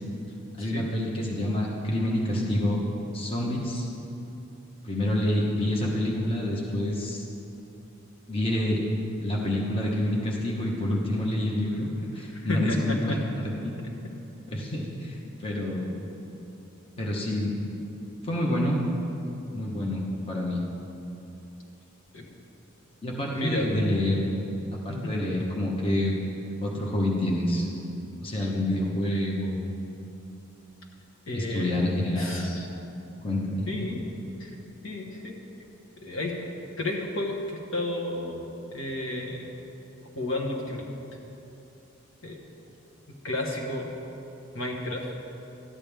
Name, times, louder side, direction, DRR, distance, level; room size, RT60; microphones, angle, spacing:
voice 1, 0.6-2.8 3.1-3.9 4.8-7.2 8.3-8.8 9.2-13.7 14.5-16.1 17.0-17.5 18.2-18.8 19.5-20.6 23.0-24.2 24.8-26.1 26.6-27.7 28.2-29.7 31.3-32.8 33.2-33.7, left 1 dB, 25° left, -2 dB, 1.0 m, -27 dB
voice 2, 12.3-13.2 22.1-22.3 23.3-23.7 24.9-25.1 28.3-28.5 31.3-31.9 32.1-32.7 33.7-34.0 34.4-34.5 34.8-35.4 36.0-36.3 36.8-39.4 40.0-40.9 42.2-42.4 43.2-43.9 44.5-45.1, left 1 dB, 75° left, 0 dB, 1.3 m, -32 dB
13.0 x 9.0 x 3.5 m, 2.9 s
head